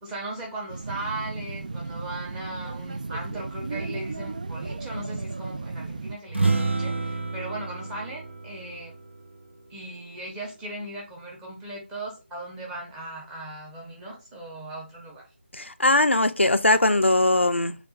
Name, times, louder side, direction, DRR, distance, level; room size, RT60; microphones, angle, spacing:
voice 1, 0.0-8.9 9.7-15.3, right 1 dB, 5° right, 0.8 m, -38 dB
sound 1, 0.7-6.2, right 3 dB, 40° right, 0.4 m, -35 dB
sound 2, 6.3-10.0, right 3 dB, 75° right, 1.2 m, -29 dB
voice 2, 15.5-17.7, left 2 dB, 90° left, 0.5 m, -20 dB
6.9 x 2.5 x 2.3 m
figure-of-eight pair, 160°, 6 cm